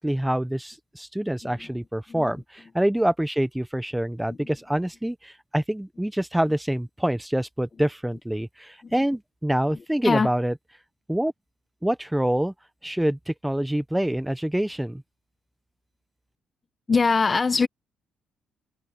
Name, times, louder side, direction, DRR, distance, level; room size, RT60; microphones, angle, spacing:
voice 1, 0.0-10.5 11.1-11.3 11.8-12.5 12.8-15.0, right 1 dB, 5° right, 0.9 m, -26 dB
voice 2, 16.9-17.7, left 4 dB, 30° left, 1.1 m, -23 dB
cardioid pair, 90°, 0 cm